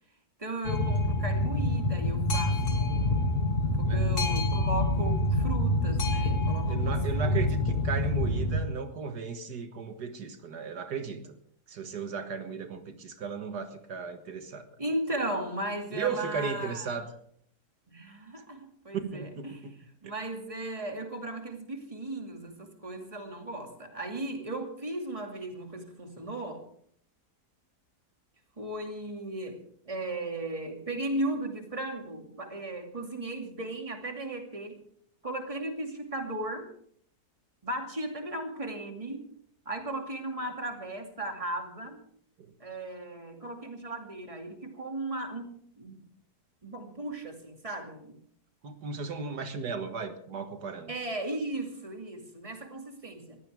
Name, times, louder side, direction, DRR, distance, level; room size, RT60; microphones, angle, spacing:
voice 1, 0.4-3.3 3.6-7.4 14.8-17.0 17.9-19.7 20.0-26.6 28.6-34.8 35.2-36.7 37.6-39.3 39.7-42.0 42.6-46.1 46.6-48.2 50.9-53.4, right 1 dB, 20° right, 3 dB, 2.6 m, -36 dB
Boat Water vehicle, 0.6-8.6, left 1 dB, 75° left, 2.9 m, -27 dB
voice 2, 6.7-11.3 11.7-14.6 15.9-17.1 18.9-19.8 20.0-20.1 48.6-50.9, right 5 dB, 80° right, 7 dB, 2.0 m, -35 dB
21.5 x 15.5 x 3.6 m, 0.63 s
omnidirectional pair, 1.7 m